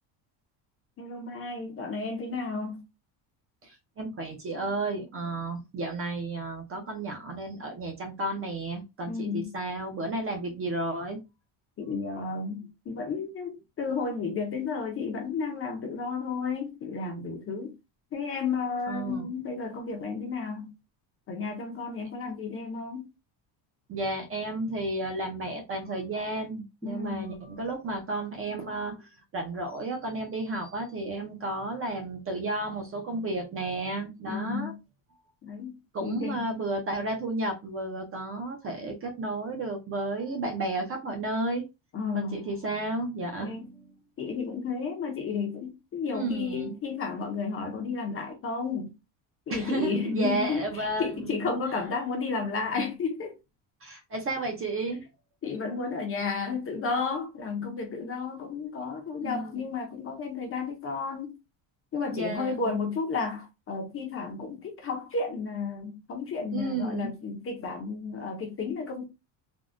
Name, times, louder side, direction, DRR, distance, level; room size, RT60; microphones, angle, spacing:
voice 1, 1.0-2.8 9.1-9.5 11.8-17.8 18.1-20.7 21.3-23.1 26.8-27.4 34.3-34.8 35.4-36.4 41.9-42.5 43.4-43.7 44.2-48.9 49.5-53.4 55.4-61.4 61.9-69.0, left 4 dB, 30° left, 0.5 m, -32 dB
voice 2, 3.6-11.2 18.9-19.3 23.9-34.7 35.9-41.7 42.1-43.9 46.1-46.8 49.5-51.5 53.8-55.1 59.2-59.7 62.1-62.7 66.5-67.1, right 2 dB, 30° right, 0.5 m, -32 dB
3.5 x 2.1 x 2.4 m
cardioid pair, 170°, 48 cm